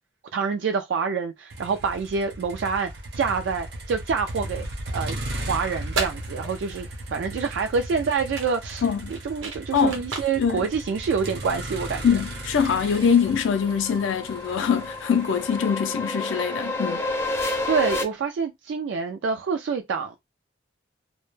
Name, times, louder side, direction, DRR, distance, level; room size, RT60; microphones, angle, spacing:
voice 1, 0.3-4.7 4.9-5.2 5.5-12.1 17.7-20.2, right 5 dB, 70° right, 0.3 m, -27 dB
Motor vehicle (road), 1.5-17.6, right 1 dB, 55° right, 0.7 m, -37 dB
sound 1, 5.7-11.7, right 4 dB, 90° right, 0.8 m, -36 dB
voice 2, 8.8-9.1 9.7-10.0 10.4-10.7 12.0-17.0, left 7 dB, 80° left, 0.4 m, -23 dB
sound 2, 11.5-18.0, left 2 dB, 15° left, 0.4 m, -31 dB
2.1 x 2.0 x 3.0 m
head